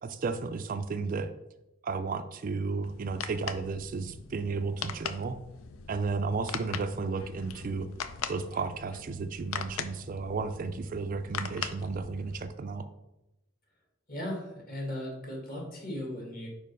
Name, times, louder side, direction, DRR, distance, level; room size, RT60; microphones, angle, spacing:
voice 1, 0.0-1.3 1.8-5.4 5.9-7.9 8.3-12.9, right 4 dB, 40° right, 9 dB, 0.3 m, -33 dB
sound 1, 2.8-12.5, left 7 dB, 85° left, 0.5 m, -41 dB
voice 2, 14.1-16.5, left 1 dB, 45° left, 0 dB, 1.9 m, -37 dB
5.2 x 4.5 x 5.4 m, 0.95 s
head